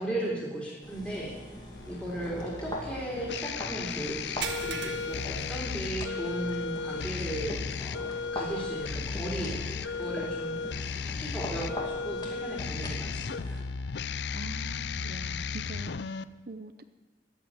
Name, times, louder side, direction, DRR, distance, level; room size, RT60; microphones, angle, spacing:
voice 1, 0.0-1.3 1.9-13.6, right 1 dB, 5° left, -6 dB, 3.8 m, -36 dB
sound 1, 0.8-13.6, left 1 dB, 20° left, 2.3 m, -42 dB
sound 2, 1.7-16.2, left 5 dB, 65° left, 0.5 m, -35 dB
sound 3, 4.4-6.3 6.6-6.9 7.3-7.4 9.1-9.2, right 6 dB, 80° right, 1.3 m, -39 dB
voice 2, 14.3-16.8, right 2 dB, 50° right, 9 dB, 0.7 m, -44 dB
13.5 x 9.1 x 9.6 m, 1.2 s
head